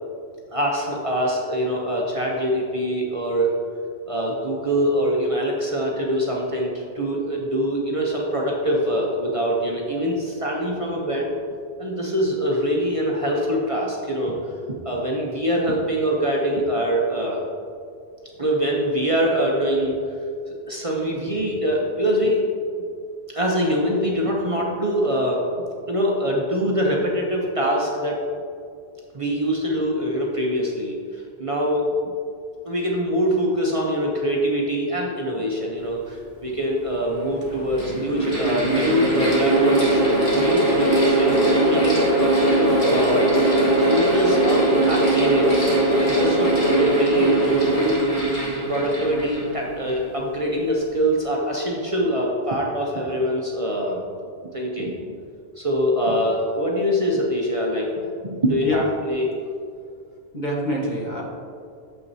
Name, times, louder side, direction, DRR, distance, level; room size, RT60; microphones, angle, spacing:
voice 1, 0.5-3.6 4.1-11.3 11.8-14.4 14.8-17.4 18.4-20.0 20.5-22.4 23.3-25.4 25.9-28.2 29.1-31.9 32.6-40.0 40.3-42.1 42.5-43.3 43.8-45.6 46.0-48.0 48.5-54.0 54.5-54.9 55.6-59.3, equal, 35° right, -2 dB, 0.8 m, -24 dB
Mechanical fan, 36.5-36.6 37.4-50.1, right 2 dB, 65° left, 2.2 m, -20 dB
voice 2, 60.3-61.2, left 1 dB, 45° left, -4 dB, 1.4 m, -25 dB
8.9 x 7.0 x 2.7 m, 2.4 s
omnidirectional pair, 1.0 m